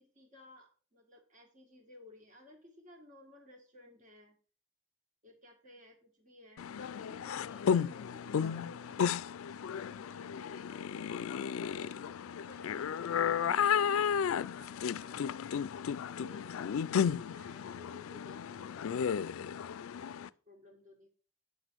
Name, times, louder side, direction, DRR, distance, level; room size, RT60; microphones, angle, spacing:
voice 1, 0.0-4.4 5.2-9.4 9.8-11.4 11.7-15.5 16.0-19.5 20.0-21.1, left 2 dB, 35° right, 2 dB, 1.9 m, -57 dB
sound 1, 6.6-20.3, left 7 dB, 80° left, 0.4 m, -33 dB
9.5 x 6.1 x 4.6 m, 0.39 s
head